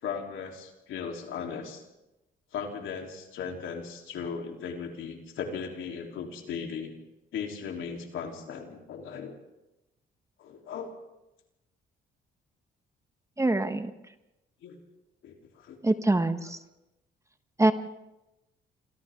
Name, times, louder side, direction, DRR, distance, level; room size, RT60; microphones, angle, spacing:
voice 1, 0.0-1.8 2.5-6.9 7.3-9.3 10.4-10.9 14.6-14.8 15.2-15.8, left 6 dB, 80° left, 2 dB, 3.6 m, -37 dB
voice 2, 13.4-13.9 15.8-16.6 17.6-17.7, right 2 dB, 15° right, 9 dB, 1.3 m, -24 dB
27.5 x 26.5 x 3.8 m, 0.96 s
cardioid pair, 90°, 20 cm